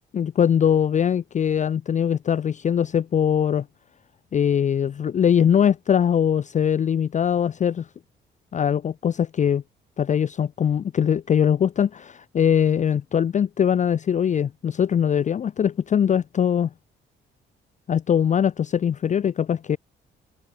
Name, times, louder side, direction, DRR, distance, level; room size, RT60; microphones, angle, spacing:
voice 1, 0.1-3.7 4.3-7.9 8.5-9.6 10.0-16.7 17.9-19.8, left 8 dB, 40° left, 0.5 m, -21 dB
cardioid pair, 90°, 20 cm